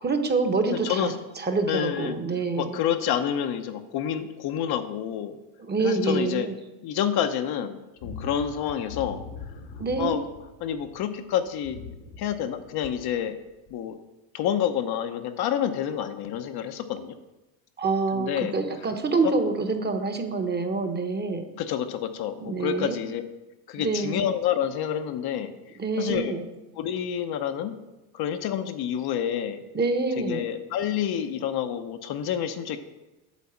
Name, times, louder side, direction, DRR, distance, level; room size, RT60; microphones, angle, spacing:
voice 1, 0.0-2.8 5.7-6.5 9.8-10.2 17.8-21.4 22.4-23.0 23.8-24.2 25.8-26.4 29.7-30.4, right 3 dB, 25° right, 6 dB, 1.0 m, -26 dB
voice 2, 0.7-1.1 1.7-2.2 2.6-5.4 5.8-6.5 6.8-9.2 10.0-10.3 10.6-11.8 12.2-13.4 13.7-14.0 14.3-17.2 18.1-18.5 19.2-19.3 21.6-23.2 23.7-25.5 26.0-26.3 26.8-27.7 28.1-29.6 30.2-32.8, left 9 dB, 60° left, 8 dB, 0.8 m, -28 dB
sound 1, 8.0-11.0 11.5-13.2 13.7-13.8, left 5 dB, 85° left, 2.1 m, -41 dB
8.3 x 4.1 x 7.0 m, 1.0 s
supercardioid pair, 105°, 44 cm